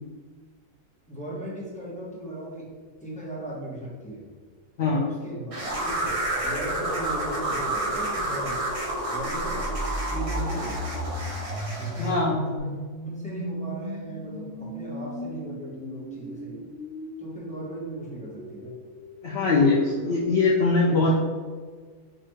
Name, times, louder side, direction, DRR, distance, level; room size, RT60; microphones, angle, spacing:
voice 1, 1.1-2.7 3.0-4.2 4.9-6.2 6.4-8.6 9.1-9.7 10.1-10.9 11.8-12.1 12.5-12.7 13.0-16.6 17.2-18.7 20.9-21.1, right 1 dB, 5° left, -7 dB, 0.7 m, -38 dB
sound 1, 5.5-12.2, right 1 dB, 60° right, 0.3 m, -29 dB
sound 2, 9.3-19.2, equal, 50° left, 1.1 m, -36 dB
voice 2, 12.0-12.4 19.2-21.2, left 3 dB, 80° left, -4 dB, 0.5 m, -22 dB
4.9 x 2.4 x 3.1 m, 1.5 s
omnidirectional pair, 1.7 m